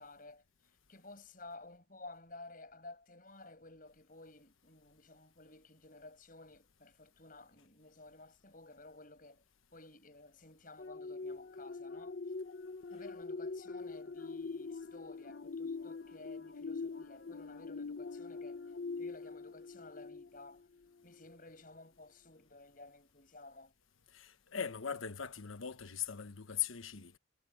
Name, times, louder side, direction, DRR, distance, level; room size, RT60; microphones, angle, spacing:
voice 1, 0.0-9.4 9.7-12.2 12.9-20.7 21.0-23.7, left 2 dB, 40° left, 6.8 m, -54 dB
sound 1, 10.8-20.6 21.1-21.3, left 4 dB, 60° left, 0.8 m, -43 dB
voice 2, 24.1-27.2, left 8 dB, 85° left, 1.2 m, -40 dB
head